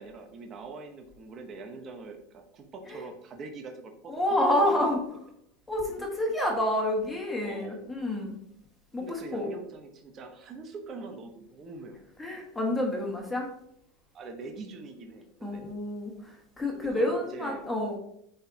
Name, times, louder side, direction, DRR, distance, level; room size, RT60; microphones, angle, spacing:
voice 1, 0.0-4.1 4.4-5.1 7.4-7.8 9.0-12.0 14.1-15.7 16.8-17.7, right 3 dB, 35° right, 3 dB, 1.1 m, -43 dB
voice 2, 4.1-5.0 5.7-8.4 8.9-9.5 12.2-13.5 15.4-18.0, left 1 dB, 10° left, 0 dB, 1.8 m, -29 dB
10.0 x 4.0 x 2.9 m, 0.73 s
supercardioid pair, 125°, 0 cm